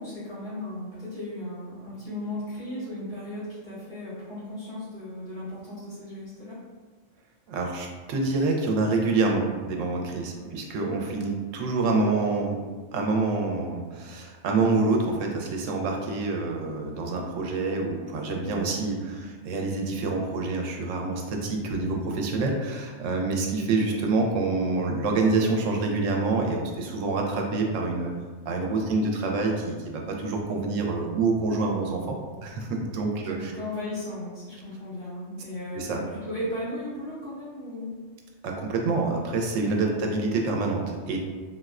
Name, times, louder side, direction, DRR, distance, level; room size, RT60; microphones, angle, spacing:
voice 1, 0.0-6.6 10.3-10.6 19.1-19.3 23.7-23.8 33.2-38.0, left 1 dB, 55° left, -13 dB, 1.9 m, -36 dB
voice 2, 7.5-12.6 12.9-28.1 28.5-33.5 35.7-36.0 38.4-41.2, right 3 dB, 90° right, 1 dB, 0.9 m, -27 dB
3.8 x 2.1 x 2.4 m, 1.5 s
omnidirectional pair, 1.3 m